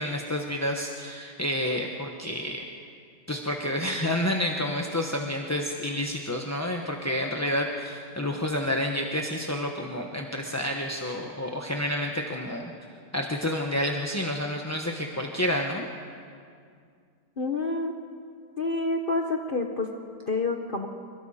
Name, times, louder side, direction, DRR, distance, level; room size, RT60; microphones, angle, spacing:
voice 1, 0.0-2.6 3.3-12.7 13.1-15.9, left 1 dB, 10° left, 1 dB, 0.8 m, -29 dB
voice 2, 17.4-17.9 18.6-19.9 20.3-20.9, left 3 dB, 35° left, 3 dB, 1.1 m, -28 dB
26.5 x 23.0 x 4.3 m, 2.3 s
omnidirectional pair, 1.8 m